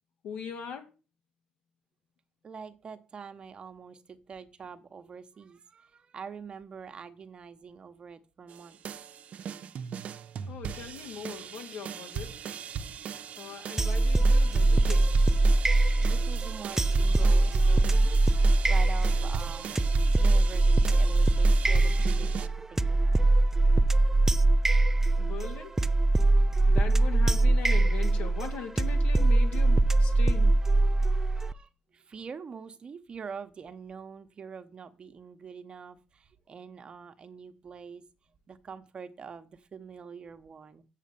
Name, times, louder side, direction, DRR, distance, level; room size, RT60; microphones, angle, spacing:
voice 1, 0.2-0.8 10.5-12.6 13.4-15.3 25.2-25.8 26.4-30.5, left 7 dB, 80° left, 2.5 m, -40 dB
voice 2, 2.4-8.8 15.8-18.2 18.7-19.8 20.2-23.4 31.3-38.0 38.5-40.8, right 6 dB, 40° right, 1.0 m, -45 dB
sound 1, 8.5-22.5, right 7 dB, 60° right, 0.8 m, -39 dB
sound 2, 13.8-31.5, right 2 dB, 15° right, 0.5 m, -22 dB
7.5 x 7.4 x 6.9 m
cardioid pair, 105°, 3 cm